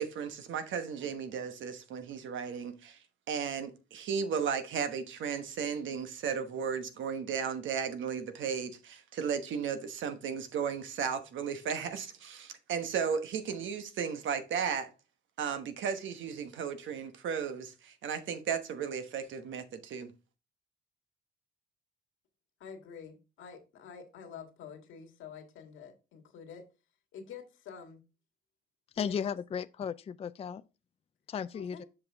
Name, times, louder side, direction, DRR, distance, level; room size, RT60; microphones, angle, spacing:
voice 1, 0.0-3.0 3.3-14.9 15.4-20.1, right 7 dB, 75° right, 1.2 m, -35 dB
voice 2, 22.6-26.7 27.1-28.0 29.0-29.1 31.5-31.9, left 6 dB, 85° left, 1.8 m, -48 dB
voice 3, 29.0-30.6 31.3-31.8, left 7 dB, 30° left, 0.4 m, -35 dB
6.8 x 5.5 x 3.5 m
cardioid pair, 90°, 20 cm